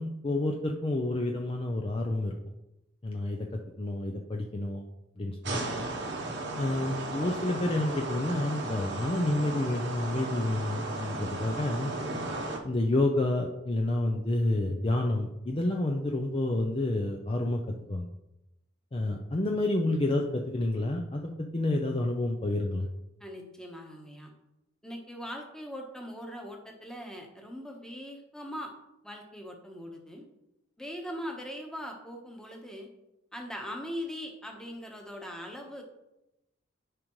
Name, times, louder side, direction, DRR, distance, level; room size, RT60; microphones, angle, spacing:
voice 1, 0.0-2.4 3.0-3.5 3.8-4.8 5.2-5.9 6.6-11.9 12.6-18.1 18.9-22.9, left 1 dB, 30° left, 2 dB, 0.5 m, -29 dB
sound 1, 5.4-12.6, right 2 dB, 65° right, 1.0 m, -35 dB
voice 2, 23.2-24.3 24.8-28.7 29.0-30.2 30.8-32.9 33.3-35.8, equal, 5° left, 1 dB, 1.1 m, -41 dB
11.0 x 5.1 x 3.1 m, 0.92 s
head